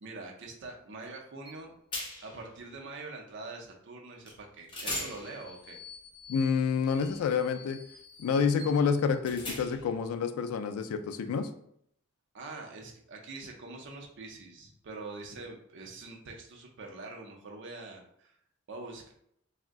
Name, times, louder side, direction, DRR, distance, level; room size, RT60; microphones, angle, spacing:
voice 1, 0.0-1.7 2.2-5.8 12.3-18.4 18.7-19.1, right 3 dB, 55° right, 1 dB, 0.5 m, -44 dB
sound 1, 1.5-1.6 1.9-2.4 4.3-4.4 4.7-10.0, left 1 dB, 25° left, 0.7 m, -42 dB
voice 2, 6.3-7.8 8.2-11.5, left 6 dB, 80° left, 8 dB, 0.3 m, -28 dB
2.5 x 2.1 x 3.5 m, 0.71 s
head